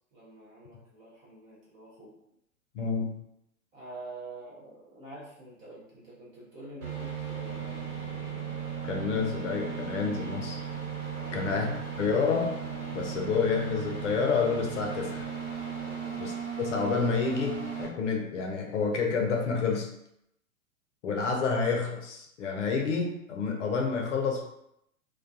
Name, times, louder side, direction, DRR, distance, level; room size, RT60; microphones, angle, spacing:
voice 1, 0.1-2.2 3.7-7.9 11.1-11.5 15.8-16.3, right 2 dB, 20° right, -6 dB, 0.5 m, -47 dB
voice 2, 2.7-3.1 8.8-10.6 11.3-11.7 12.0-12.5 12.9-15.3 16.2-16.3 16.6-19.9 21.0-24.4, left 5 dB, 55° left, 1 dB, 0.6 m, -29 dB
sound 1, 6.8-17.8, right 7 dB, 60° right, 1.3 m, -36 dB
2.3 x 2.2 x 2.5 m, 0.77 s
figure-of-eight pair, 105°, 43 cm